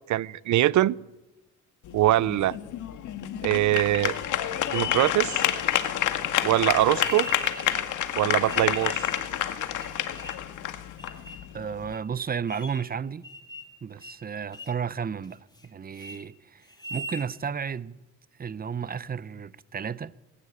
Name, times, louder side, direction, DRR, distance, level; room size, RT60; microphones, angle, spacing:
voice 1, 0.1-1.0 1.9-2.6 3.4-4.1 4.7-5.4 6.4-7.3 8.2-9.0, right 15 dB, 70° right, 0.6 m, -22 dB
sound 1, 1.8-11.9, left 11 dB, 80° left, 2.0 m, -29 dB
sound 2, 7.0-7.8 8.5-9.3 9.8-10.5 11.0-11.5 11.9-12.0 12.5-12.9 13.2-13.8 14.0-14.2 14.5-14.8 15.2-15.7 15.9-16.2 16.7-17.3, right 1 dB, 15° left, 2.7 m, -41 dB
voice 2, 11.5-13.2 13.8-16.6 16.9-18.0 18.4-20.1, right 7 dB, 30° right, 0.8 m, -33 dB
20.0 x 17.0 x 9.0 m
cardioid pair, 90°, 30 cm